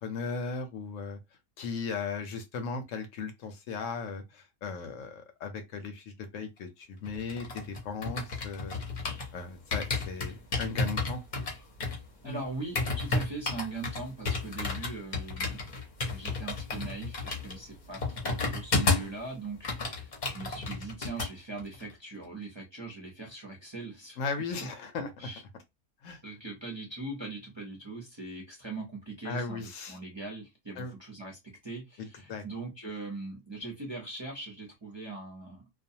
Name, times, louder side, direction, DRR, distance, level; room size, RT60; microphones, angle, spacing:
voice 1, 0.0-1.2 1.6-8.8 9.3-11.2 12.2-12.4 24.2-25.1 26.0-26.2 29.2-30.0 30.8-30.9 32.0-32.4, left 4 dB, 70° left, 0.9 m, -37 dB
sound 1, 7.1-9.3 9.7-19.2 19.5-21.3 21.6-21.9, left 3 dB, 40° left, 0.7 m, -32 dB
voice 2, 12.2-15.6 16.0-24.2 24.5-24.7 25.0-25.4 26.2-35.6, right 3 dB, 30° right, 0.6 m, -41 dB
2.3 x 2.3 x 2.7 m
omnidirectional pair, 1.5 m